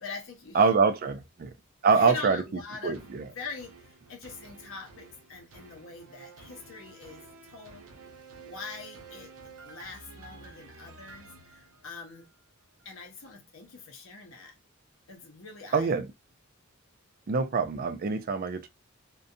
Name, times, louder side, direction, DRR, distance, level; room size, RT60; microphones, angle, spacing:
voice 1, 0.0-0.7 1.1-1.2 1.9-3.1 3.3-7.9 8.4-9.3 9.6-12.3 12.8-14.5 15.1-16.0, left 4 dB, 65° left, 0.7 m, -43 dB
voice 2, 0.5-1.5 1.8-2.4 2.8-3.3 15.7-16.1 17.3-18.7, right 5 dB, 40° right, 0.3 m, -25 dB
sound 1, 2.9-12.3 12.8-12.9, right 4 dB, 80° right, 0.6 m, -51 dB
2.5 x 2.2 x 2.5 m
head